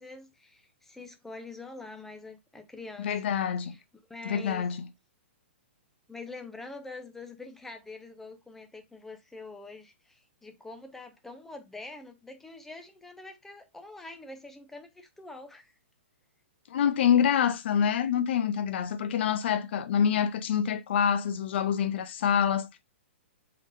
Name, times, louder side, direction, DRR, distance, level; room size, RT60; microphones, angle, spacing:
voice 1, 0.0-3.1 3.6-3.8 4.1-4.7 6.1-15.7, left 3 dB, 5° left, 0.6 m, -45 dB
voice 2, 3.0-3.7 4.2-4.9 16.7-22.8, left 8 dB, 60° left, 0.5 m, -26 dB
3.9 x 3.6 x 2.5 m
hypercardioid pair, 155°, 7 cm